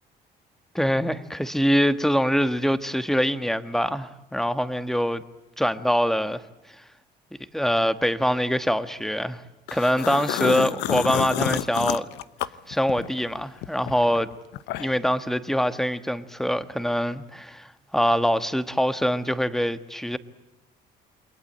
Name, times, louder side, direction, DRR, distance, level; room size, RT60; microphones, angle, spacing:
voice 1, 0.7-5.2 5.6-6.4 7.5-9.4 9.7-12.1 12.7-14.3 14.8-20.2, equal, ahead, 1.3 m, -24 dB
sound 1, 9.7-13.2 13.6-15.1, left 14 dB, 90° left, 0.9 m, -29 dB
28.5 x 22.0 x 8.9 m
cardioid pair, 110°, 17 cm